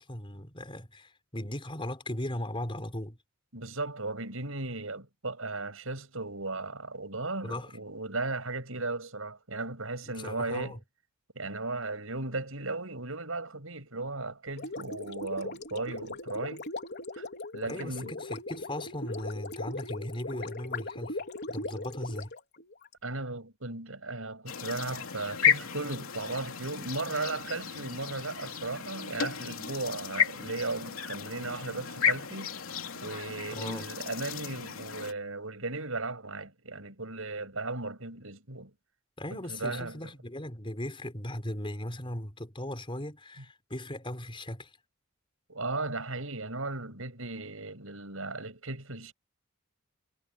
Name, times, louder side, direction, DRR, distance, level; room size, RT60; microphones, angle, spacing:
voice 1, 0.0-3.2 7.4-7.7 10.1-10.8 17.6-21.2 21.5-22.3 33.4-33.9 39.2-44.7, left 1 dB, 25° left, 4.7 m, -38 dB
voice 2, 3.5-10.8 11.3-16.7 17.1-17.3 17.5-18.2 23.0-32.5 33.0-38.7 39.3-40.0 45.5-49.1, right 2 dB, 75° right, 7.4 m, -36 dB
Gurgling, 14.5-22.9, left 2 dB, 50° left, 4.4 m, -39 dB
sound 1, 24.5-35.1, left 8 dB, 80° left, 2.9 m, -33 dB
head